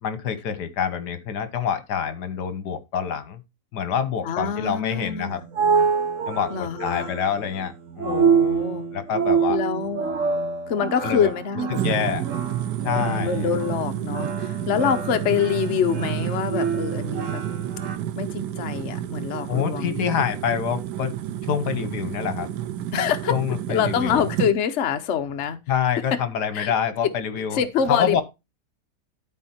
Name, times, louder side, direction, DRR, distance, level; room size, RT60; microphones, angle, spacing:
voice 1, 0.0-3.4 3.7-5.4 6.3-8.6 8.9-9.6 11.0-11.3 11.7-12.2 12.8-13.5 19.5-21.1 21.4-22.5 23.3-24.3 25.7-27.6 27.9-28.2, left 8 dB, 80° left, 1.6 m, -26 dB
voice 2, 4.2-5.5 6.5-7.1 8.0-8.8 9.5-10.1 10.7-12.2 13.0-17.4 18.2-20.0 22.9-23.3 23.7-25.6 26.1-26.2 26.5-26.7 27.0-27.1 27.5-28.2, left 7 dB, 50° left, 1.1 m, -25 dB
sound 1, 5.1-18.0, right 6 dB, 55° right, 1.2 m, -26 dB
sound 2, 11.7-24.5, right 11 dB, 85° right, 1.4 m, -30 dB
12.5 x 4.3 x 4.3 m
omnidirectional pair, 1.8 m